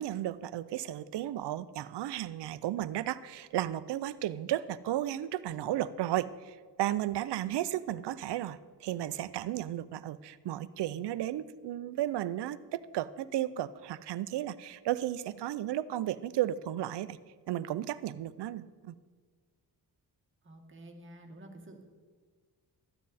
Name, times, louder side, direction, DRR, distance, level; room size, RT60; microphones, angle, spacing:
voice 1, 0.0-17.2 17.5-18.9, right 13 dB, 85° right, 16 dB, 0.5 m, -34 dB
voice 2, 20.4-21.8, right 1 dB, 30° right, 2 dB, 1.5 m, -50 dB
13.5 x 9.6 x 4.1 m, 1.5 s
wide cardioid pair, 130°, 40 cm